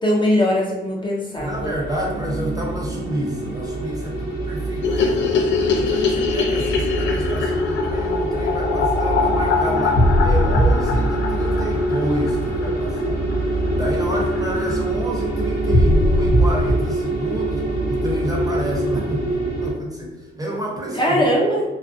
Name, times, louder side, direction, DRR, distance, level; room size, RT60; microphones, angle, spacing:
voice 1, 0.0-1.7 21.0-21.6, equal, 25° left, -3 dB, 0.6 m, -20 dB
sound 1, 1.4-19.7, right 1 dB, 50° left, 1.1 m, -22 dB
voice 2, 1.4-13.2 13.5-19.3 19.6-21.3, right 1 dB, 20° right, -2 dB, 0.7 m, -29 dB
sound 2, 1.9-4.5 4.8-4.9 5.2-8.6 9.1-12.7 12.9-20.5, right 3 dB, 65° right, 0.5 m, -37 dB
sound 3, 4.8-13.0 13.3-13.4 13.7-13.8 14.0-14.1 14.3-14.9, left 5 dB, 70° left, 0.4 m, -24 dB
2.4 x 2.1 x 2.5 m, 1.1 s
cardioid pair, 90°, 20 cm